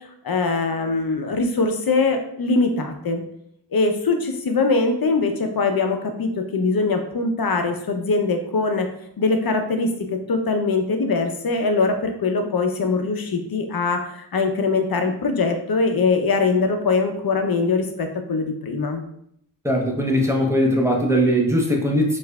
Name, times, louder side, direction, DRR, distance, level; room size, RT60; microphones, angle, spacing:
voice 1, 0.2-3.2 3.7-8.9 9.2-19.0, left 3 dB, 60° left, 5 dB, 0.6 m, -22 dB
voice 2, 19.6-22.2, equal, 5° right, 1 dB, 0.7 m, -20 dB
4.6 x 2.5 x 2.2 m, 0.71 s
wide cardioid pair, 55°, 41 cm